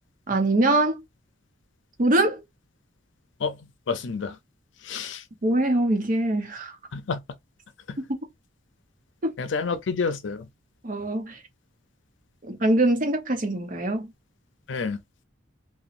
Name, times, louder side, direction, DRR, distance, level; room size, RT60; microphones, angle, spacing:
voice 1, 0.3-1.0 2.0-2.4 5.4-6.7 8.1-8.2 9.2-9.3 10.8-11.4 12.4-14.1, right 1 dB, 45° right, 0.8 m, -23 dB
voice 2, 3.9-4.4 4.8-5.2 6.9-7.2 7.9-8.0 9.4-10.5 14.7-15.0, left 5 dB, 80° left, 0.5 m, -29 dB
2.9 x 2.2 x 2.5 m
head